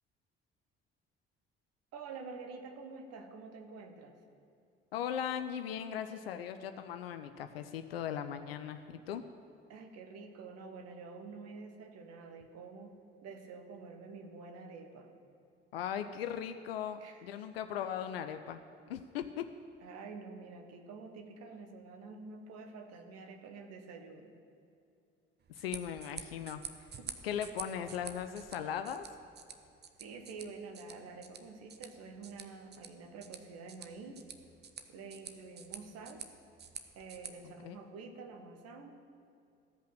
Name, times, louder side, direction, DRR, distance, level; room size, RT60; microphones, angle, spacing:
voice 1, 1.9-4.2 9.7-12.9 13.2-15.1 17.0-17.3 19.8-24.3 27.0-27.1 27.4-27.5 30.0-34.2 34.9-36.2 36.9-38.9, right 4 dB, 55° right, 5 dB, 1.3 m, -48 dB
voice 2, 4.9-9.2 15.7-18.6 18.9-19.4 25.5-26.6 27.2-29.0 37.4-37.8, left 9 dB, 75° left, 8 dB, 0.5 m, -38 dB
sound 1, 25.4-37.3, right 6 dB, 35° right, 0.9 m, -49 dB
14.5 x 5.5 x 7.6 m, 2.5 s
figure-of-eight pair, 45°, 30 cm